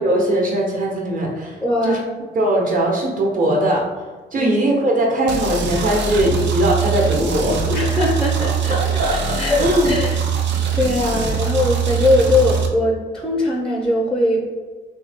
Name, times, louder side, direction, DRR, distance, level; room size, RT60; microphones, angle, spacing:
voice 1, 0.0-2.0 2.3-4.0 4.3-7.7 8.7-9.2 9.6-9.9, right 1 dB, 45° right, -2 dB, 1.1 m, -20 dB
voice 2, 1.6-2.0 4.3-4.6 7.7-8.7 9.1-10.2 10.7-14.4, left 2 dB, 5° left, -1 dB, 0.5 m, -20 dB
sound 1, 5.3-12.7, right 6 dB, 65° right, 0.6 m, -22 dB
3.1 x 2.7 x 3.5 m, 1.4 s
cardioid pair, 90°, 20 cm